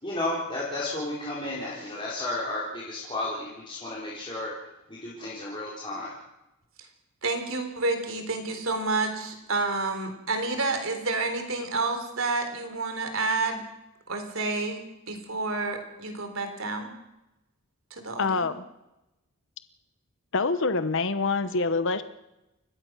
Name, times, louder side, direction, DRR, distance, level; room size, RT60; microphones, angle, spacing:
voice 1, 0.0-4.5 4.9-6.1, left 2 dB, 25° left, -6 dB, 4.2 m, -33 dB
voice 2, 7.2-13.6 14.1-14.8 15.1-16.9 17.9-18.5, right 3 dB, 65° right, 6 dB, 3.8 m, -29 dB
voice 3, 18.2-18.7 20.3-22.0, left 3 dB, 60° left, 11 dB, 0.9 m, -25 dB
29.0 x 16.0 x 6.2 m, 0.95 s
head